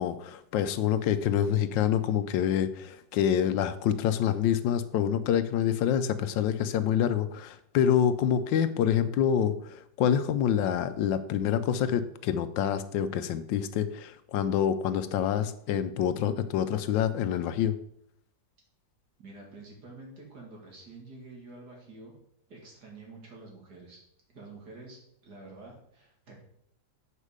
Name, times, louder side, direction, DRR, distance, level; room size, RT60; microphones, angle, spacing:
voice 1, 0.0-17.7, left 9 dB, 85° left, 12 dB, 1.3 m, -27 dB
voice 2, 19.2-22.2 22.5-24.0 24.3-26.4, right 3 dB, 60° right, -1 dB, 2.5 m, -48 dB
8.2 x 5.4 x 4.9 m, 0.72 s
omnidirectional pair, 2.0 m